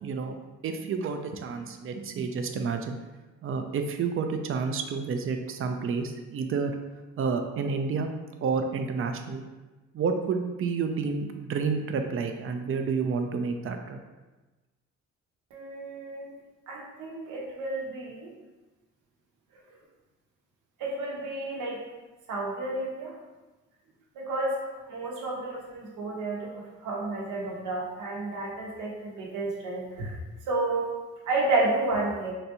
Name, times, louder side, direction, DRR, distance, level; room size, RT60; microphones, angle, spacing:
voice 1, 0.0-0.3 0.6-3.0 3.4-6.7 7.2-8.1 8.4-9.4 9.9-14.0, right 5 dB, 45° right, 5 dB, 0.4 m, -30 dB
voice 2, 15.5-16.3 16.7-18.3 20.8-21.8 22.3-23.1 24.1-30.2 30.5-30.9 31.3-32.3, right 2 dB, 85° right, -2 dB, 0.9 m, -31 dB
3.9 x 2.2 x 2.9 m, 1.2 s
cardioid pair, 90°, 30 cm